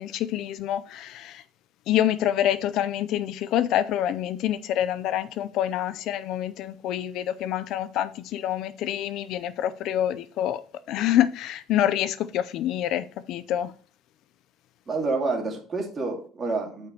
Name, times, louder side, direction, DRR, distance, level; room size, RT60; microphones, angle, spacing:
voice 1, 0.0-1.4 1.9-10.6 10.9-13.7, left 11 dB, 60° left, 0.5 m, -26 dB
voice 2, 14.9-16.9, right 3 dB, 25° right, 2.4 m, -28 dB
9.1 x 5.2 x 4.5 m
cardioid pair, 150°, 0 cm